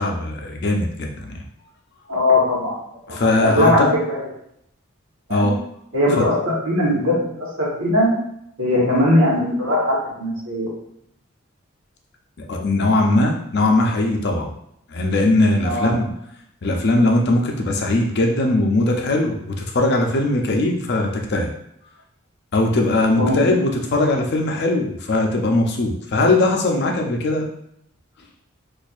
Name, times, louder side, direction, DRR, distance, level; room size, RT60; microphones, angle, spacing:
voice 1, 0.0-1.4 3.1-3.9 5.3-5.6 6.2-6.3 12.5-14.5 14.9-16.2 16.6-21.5 22.5-27.5, left 2 dB, 50° left, 1 dB, 0.5 m, -20 dB
voice 2, 2.1-2.7 3.1-4.3 5.3-5.5 5.9-8.1 8.6-10.7 15.6-16.0 23.2-23.5, left 1 dB, 70° right, -5 dB, 1.3 m, -20 dB
4.3 x 2.5 x 2.4 m, 0.74 s
head